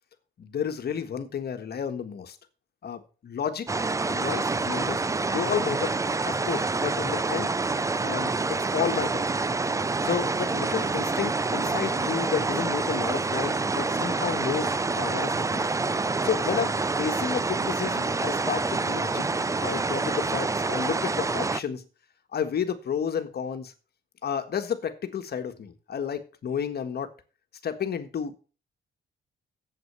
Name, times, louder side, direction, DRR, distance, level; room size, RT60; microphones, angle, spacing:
voice 1, 0.4-2.4 2.8-3.7 4.1-5.0 5.3-5.9 6.3-7.5 8.0-9.2 10.0-15.7 16.2-19.2 19.6-21.8 22.3-23.7 24.2-27.1 27.6-28.4, left 8 dB, 55° left, 1.6 m, -31 dB
sound 1, 3.7-21.6, right 3 dB, 15° right, 0.5 m, -27 dB
8.0 x 8.0 x 6.9 m
cardioid pair, 90°, 20 cm